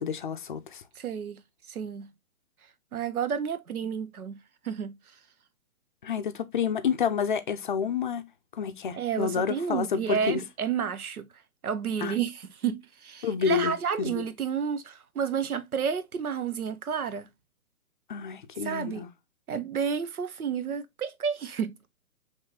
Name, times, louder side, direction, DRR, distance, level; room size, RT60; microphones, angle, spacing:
voice 1, 0.0-0.8 6.0-8.2 8.5-10.4 12.0-12.2 13.2-14.2 18.1-19.1, left 7 dB, 35° left, 0.5 m, -29 dB
voice 2, 1.0-1.4 1.7-2.1 2.9-4.4 4.6-5.0 8.9-11.3 11.6-17.3 18.6-19.0 19.5-21.8, right 7 dB, 90° right, 0.8 m, -31 dB
5.6 x 3.2 x 2.7 m
hypercardioid pair, 145°, 43 cm